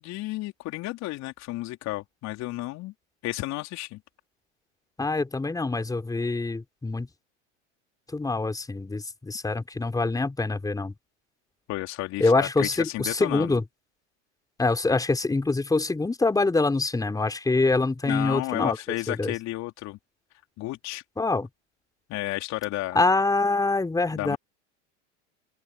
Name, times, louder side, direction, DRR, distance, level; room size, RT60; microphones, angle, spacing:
voice 1, 0.0-2.9 3.2-4.0 11.7-13.6 18.0-20.0 20.6-21.0 22.1-23.0 24.1-24.4, left 18 dB, 45° left, 3.9 m, -32 dB
voice 2, 5.0-7.1 8.1-10.9 12.2-13.6 14.6-18.8 19.1-19.3 21.2-21.5 22.9-24.4, left 3 dB, 10° left, 3.9 m, -25 dB
hypercardioid pair, 90°, 36 cm